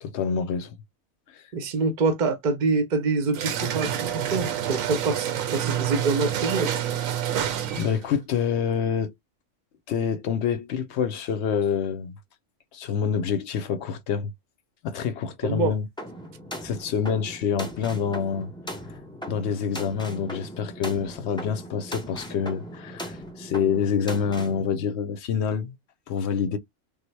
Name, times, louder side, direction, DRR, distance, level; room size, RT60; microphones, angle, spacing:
voice 1, 0.0-0.7 1.3-1.4 7.3-7.4 7.8-9.1 9.9-12.2 12.7-14.3 14.8-15.8 16.6-18.5 19.3-25.8 26.1-26.6, left 7 dB, 65° left, 0.8 m, -27 dB
voice 2, 1.5-6.8 15.4-15.7, right 4 dB, 50° right, 0.7 m, -26 dB
sound 1, 3.3-8.1, right 10 dB, 85° right, 1.0 m, -28 dB
sound 2, 16.0-24.6, equal, 5° left, 0.4 m, -38 dB
3.5 x 2.1 x 3.1 m
omnidirectional pair, 1.4 m